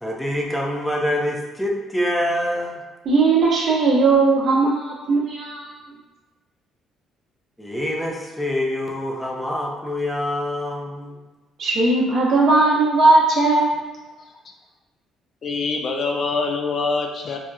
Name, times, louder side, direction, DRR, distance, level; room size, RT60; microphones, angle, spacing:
voice 1, 0.0-2.8 7.6-11.3, left 1 dB, 5° left, -2 dB, 0.7 m, -25 dB
voice 2, 3.0-5.7 11.6-13.8, right 3 dB, 60° right, -3 dB, 0.8 m, -18 dB
voice 3, 14.2-14.5 15.4-17.4, left 4 dB, 50° left, 2 dB, 0.4 m, -25 dB
4.2 x 2.3 x 2.3 m, 1.1 s
supercardioid pair, 70°, 0 cm